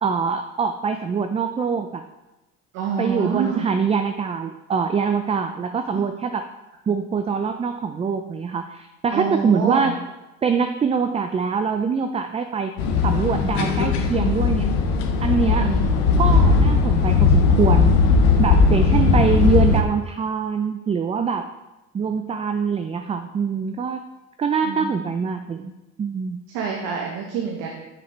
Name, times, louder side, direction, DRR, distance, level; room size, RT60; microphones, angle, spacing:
voice 1, 0.0-2.1 3.0-6.5 6.9-10.0 10.4-12.7 13.0-14.7 15.2-15.7 16.2-17.9 18.4-21.5 21.9-24.0 24.4-25.7 26.0-26.4, right 6 dB, 20° right, 7 dB, 0.4 m, -24 dB
voice 2, 2.7-3.7 5.9-6.0 9.1-9.9 15.6-16.0 18.9-19.4 24.6-25.0 26.5-27.7, right 6 dB, 85° right, 0 dB, 1.1 m, -27 dB
sound 1, 12.8-19.8, left 4 dB, 90° left, 0.8 m, -18 dB
6.6 x 4.1 x 4.3 m, 1.0 s
supercardioid pair, 90°, 31 cm